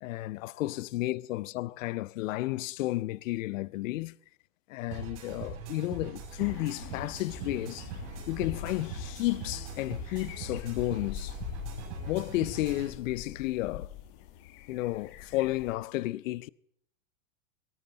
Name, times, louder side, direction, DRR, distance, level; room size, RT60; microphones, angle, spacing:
voice 1, 0.0-4.1 4.7-7.9 8.3-11.4 12.1-13.9 14.7-16.5, left 17 dB, 75° left, 0.5 m, -32 dB
sound 1, 4.9-12.9, right 3 dB, 60° right, 6.1 m, -41 dB
sound 2, 6.4-15.8, left 10 dB, 45° left, 1.3 m, -45 dB
17.0 x 13.5 x 4.0 m
supercardioid pair, 150°, 39 cm